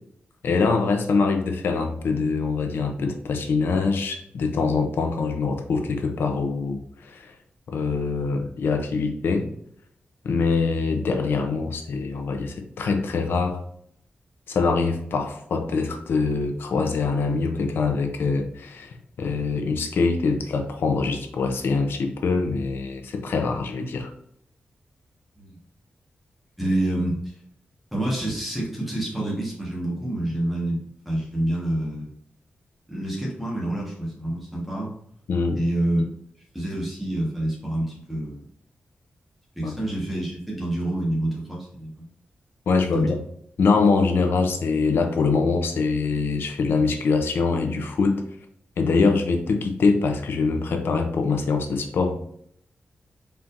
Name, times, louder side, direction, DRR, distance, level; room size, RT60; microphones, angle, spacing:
voice 1, 0.4-7.3 7.7-9.5 10.2-13.6 14.5-24.1 35.3-35.6 39.6-39.7 42.7-43.2 43.6-48.2 48.8-52.2, left 4 dB, 85° left, 5 dB, 0.6 m, -24 dB
voice 2, 26.6-27.2 27.9-32.1 32.9-34.9 35.5-36.0 36.5-38.4 39.5-41.9 42.9-43.1, right 1 dB, ahead, -5 dB, 1.3 m, -27 dB
4.4 x 3.6 x 2.6 m, 0.68 s
wide cardioid pair, 175°, 4 cm